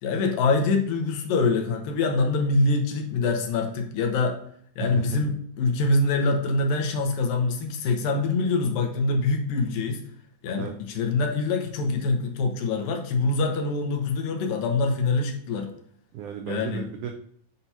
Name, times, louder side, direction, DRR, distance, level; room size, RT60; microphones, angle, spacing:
voice 1, 0.0-4.4 4.8-10.0 10.4-15.7 16.5-16.8, left 3 dB, 75° left, 3 dB, 2.5 m, -24 dB
voice 2, 4.8-5.2 10.6-10.8 16.1-17.1, right 7 dB, 90° right, 4 dB, 1.7 m, -34 dB
8.1 x 2.9 x 5.5 m, 0.63 s
omnidirectional pair, 4.2 m